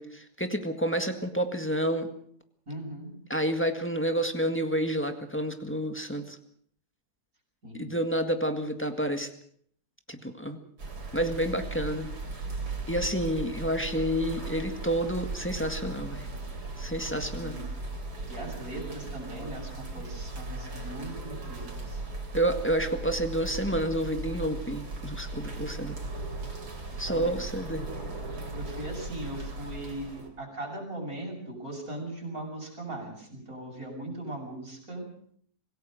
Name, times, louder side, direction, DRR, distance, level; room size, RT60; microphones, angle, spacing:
voice 1, 0.0-2.1 3.3-6.4 7.7-9.3 10.1-10.6 11.1-12.1 12.9-16.3 16.8-17.6 22.3-26.0 27.0-27.9, right 1 dB, 5° left, 6 dB, 1.7 m, -29 dB
voice 2, 2.7-3.1 7.6-7.9 17.4-17.7 18.3-22.0 27.1-27.3 28.5-35.1, right 1 dB, 60° right, -1 dB, 7.7 m, -39 dB
sound 1, 10.8-30.3, right 2 dB, 80° right, 4.1 m, -37 dB
26.0 x 17.0 x 6.4 m, 0.63 s
omnidirectional pair, 1.7 m